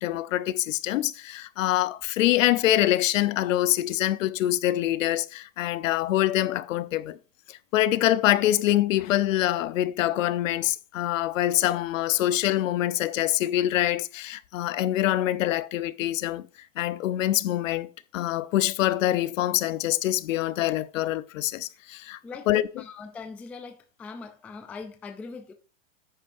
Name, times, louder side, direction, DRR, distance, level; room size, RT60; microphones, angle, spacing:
voice 1, 0.0-7.2 7.5-16.5 16.8-17.9 18.1-22.2 22.5-22.6, left 14 dB, 70° left, 0.9 m, -25 dB
voice 2, 22.8-25.5, left 4 dB, 5° left, 0.3 m, -41 dB
10.5 x 8.8 x 2.6 m
supercardioid pair, 140°, 40 cm